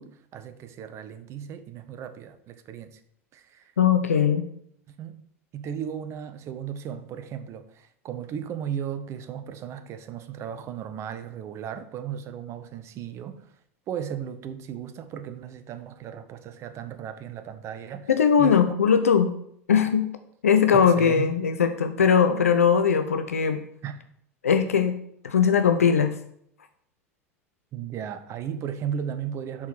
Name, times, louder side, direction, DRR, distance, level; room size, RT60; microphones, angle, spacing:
voice 1, 0.0-3.0 3.3-3.7 5.0-5.2 5.5-13.5 13.9-18.1 18.4-18.8 20.7-21.3 23.8-24.0 27.7-29.7, right 8 dB, 35° right, 0.7 m, -35 dB
voice 2, 3.8-4.4 18.1-19.3 19.7-20.1 20.4-23.6 24.4-25.0 25.2-26.2, left 7 dB, 75° left, 0.5 m, -20 dB
5.9 x 4.6 x 6.4 m
figure-of-eight pair, 80°, 8 cm